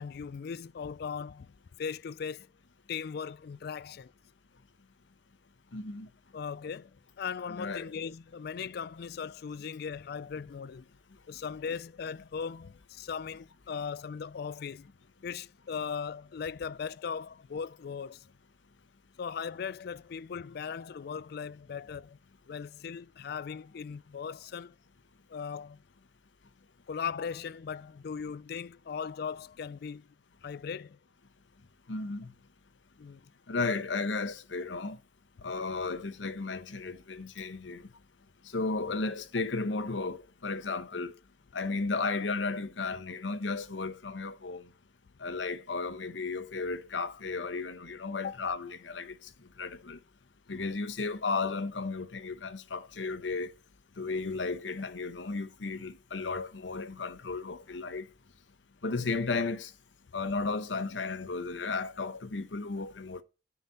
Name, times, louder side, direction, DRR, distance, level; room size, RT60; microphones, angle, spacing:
voice 1, 0.0-1.5 1.8-2.5 2.9-4.1 6.3-6.9 7.2-10.8 11.3-14.9 15.2-18.3 19.2-22.2 22.5-24.8 25.3-25.8 26.9-30.1 30.4-31.0 33.0-33.2 48.1-48.4, left 6 dB, 55° left, 0.3 m, -38 dB
voice 2, 5.7-6.1 7.6-7.9 31.9-32.3 33.5-35.0 35.4-37.8 38.5-41.1 41.5-44.6 45.2-49.1 49.6-50.0 50.5-53.5 54.0-58.1 58.8-59.7 60.1-63.2, left 3 dB, 85° left, 1.0 m, -34 dB
9.8 x 4.1 x 5.7 m
head